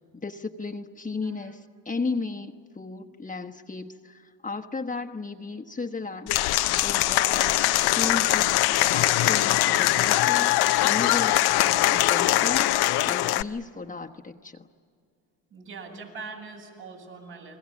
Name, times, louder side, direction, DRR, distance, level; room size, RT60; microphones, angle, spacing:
voice 1, 0.1-6.4 6.8-10.5 10.8-12.8 13.0-14.7, left 4 dB, 20° left, 3 dB, 1.2 m, -35 dB
Applause / Crowd, 6.3-13.4, left 15 dB, 65° left, 0.7 m, -22 dB
voice 2, 15.5-17.6, right 4 dB, 70° right, -1 dB, 7.7 m, -42 dB
29.0 x 21.5 x 7.3 m, 2.2 s
supercardioid pair, 65°, 41 cm